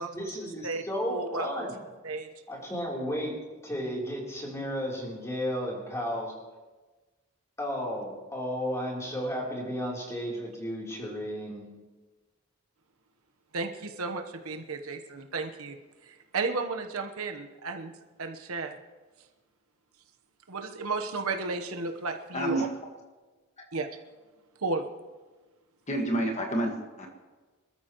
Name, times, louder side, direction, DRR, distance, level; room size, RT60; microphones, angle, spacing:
voice 1, 0.0-1.8 2.5-3.3 3.6-6.3 7.6-11.7, equal, 15° left, -3 dB, 3.5 m, -33 dB
voice 2, 1.1-1.5 2.0-2.3 13.5-15.8 16.3-17.9 18.2-18.8 20.5-22.7 23.7-23.9 24.6-24.8, right 3 dB, 80° right, 5 dB, 1.1 m, -33 dB
voice 3, 22.3-22.7 23.6-23.7 25.9-27.1, right 1 dB, 35° left, 2 dB, 1.7 m, -29 dB
26.0 x 13.5 x 3.1 m, 1.3 s
head